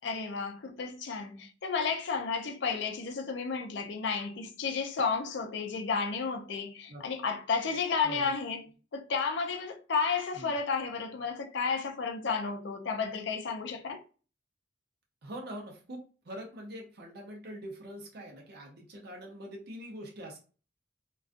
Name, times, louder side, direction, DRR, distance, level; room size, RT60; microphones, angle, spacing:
voice 1, 0.0-8.7 8.9-14.0, left 5 dB, 60° left, 0.4 m, -32 dB
voice 2, 15.2-20.4, equal, 50° right, 0.6 m, -44 dB
2.4 x 2.2 x 2.4 m
head